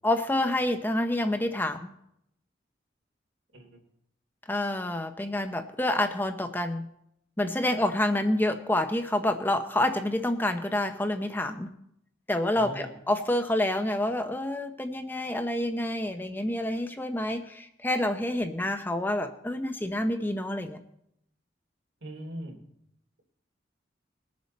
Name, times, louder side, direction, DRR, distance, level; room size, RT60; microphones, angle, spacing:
voice 1, 0.0-1.9 4.5-6.9 7.4-11.7 12.3-20.8, left 1 dB, 10° left, 7 dB, 0.7 m, -28 dB
voice 2, 12.5-13.0 22.0-22.6, right 1 dB, 85° right, 1 dB, 3.2 m, -40 dB
21.0 x 7.3 x 4.2 m, 0.75 s
head